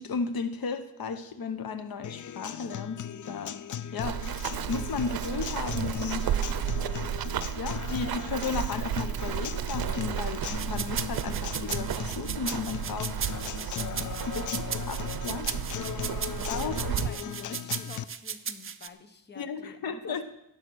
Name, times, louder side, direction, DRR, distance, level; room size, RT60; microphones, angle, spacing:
voice 1, 0.0-3.6 3.9-4.2 4.7-6.3 7.6-13.2 14.3-15.5 16.5-16.9 19.4-20.2, left 5 dB, 75° left, 11 dB, 1.0 m, -34 dB
Acoustic guitar, 2.0-18.0, left 9 dB, 55° left, 0.5 m, -38 dB
Run, 4.0-17.1, right 10 dB, 75° right, 0.6 m, -33 dB
sound 1, 10.6-18.9, right 7 dB, 35° right, 0.6 m, -36 dB
voice 2, 13.8-14.6 16.1-20.2, left 3 dB, 30° left, 9 dB, 1.0 m, -48 dB
17.0 x 7.4 x 6.3 m, 0.83 s
wide cardioid pair, 150°, 36 cm